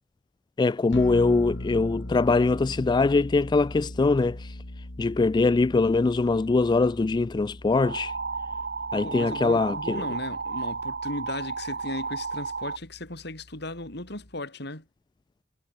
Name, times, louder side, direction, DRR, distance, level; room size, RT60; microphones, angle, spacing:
voice 1, 0.6-4.6 5.0-8.2 8.9-10.0, left 3 dB, 25° left, 0.3 m, -23 dB
sound 1, 0.9-14.3, left 1 dB, 80° left, 2.7 m, -41 dB
sound 2, 7.8-12.8, right 4 dB, 60° right, 3.0 m, -33 dB
voice 2, 9.0-14.9, left 1 dB, 65° left, 6.5 m, -36 dB
head